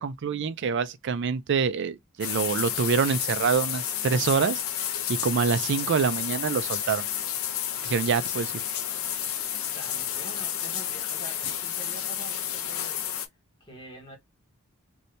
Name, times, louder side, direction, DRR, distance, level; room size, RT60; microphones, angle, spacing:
voice 1, 0.0-7.1 7.8-8.5, right 6 dB, 55° right, 0.4 m, -26 dB
sound 1, 2.2-13.3, left 10 dB, 80° left, 0.7 m, -31 dB
voice 2, 9.0-9.5 9.7-14.2, right 2 dB, 25° left, 1.2 m, -47 dB
2.7 x 2.7 x 3.2 m
head